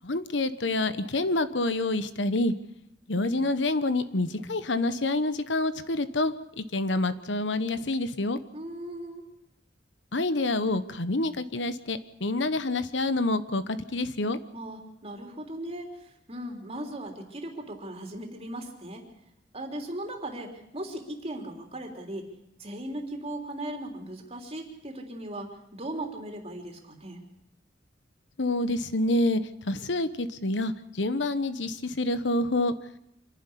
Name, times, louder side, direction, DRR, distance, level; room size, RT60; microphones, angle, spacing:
voice 1, 0.0-2.5 3.1-8.4 10.1-14.4 28.4-29.4 29.7-32.7, left 2 dB, 75° left, 12 dB, 1.2 m, -27 dB
voice 2, 8.5-9.2 14.5-19.1 19.5-22.3 22.6-27.2, right 1 dB, 35° right, 2 dB, 3.4 m, -38 dB
26.0 x 11.0 x 10.0 m, 0.80 s
head